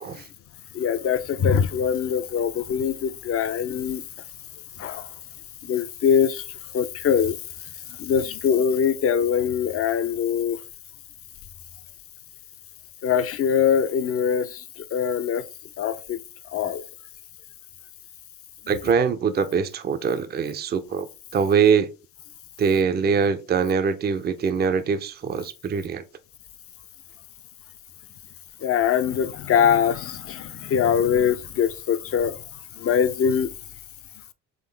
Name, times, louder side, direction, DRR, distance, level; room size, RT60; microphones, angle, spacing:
voice 1, 0.7-4.0 4.8-5.1 5.6-6.4 6.7-7.4 8.0-10.6 13.0-14.6 14.9-15.4 15.8-16.2 16.5-16.8 28.6-32.4 32.8-33.5, left 8 dB, 35° left, 0.5 m, -22 dB
voice 2, 18.7-21.9 22.6-26.0, right 6 dB, 25° right, 0.5 m, -23 dB
3.9 x 3.6 x 3.4 m
hypercardioid pair, 65°, 40 cm